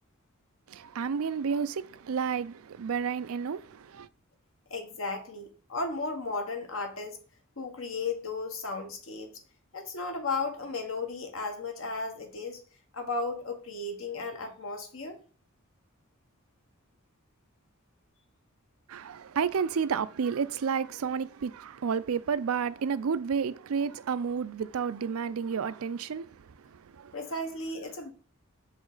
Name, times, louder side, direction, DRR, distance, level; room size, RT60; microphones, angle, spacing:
voice 1, 0.7-4.1 18.9-27.2, right 6 dB, 80° right, 0.4 m, -31 dB
voice 2, 4.7-7.2 7.6-9.4 9.7-12.6 12.9-15.2 27.1-28.1, left 3 dB, 65° left, 1.3 m, -35 dB
6.1 x 5.0 x 4.0 m
head